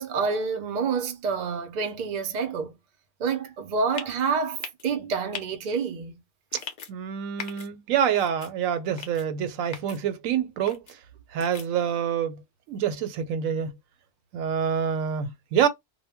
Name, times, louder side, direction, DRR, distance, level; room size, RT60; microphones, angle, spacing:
voice 1, 0.0-2.8 3.2-6.2, right 5 dB, 55° right, 0.5 m, -28 dB
sound 1, 3.9-4.2 4.6-4.8 5.3-5.4 6.5-6.9 7.4-7.7 8.1-8.5 9.0-9.2 9.7-10.0 10.7-10.9 11.4-11.7, left 6 dB, 55° left, 0.6 m, -38 dB
voice 2, 6.9-10.8 11.3-12.4 12.7-13.8 14.3-15.7, right 8 dB, 90° right, 1.0 m, -26 dB
2.1 x 2.0 x 3.3 m
omnidirectional pair, 1.4 m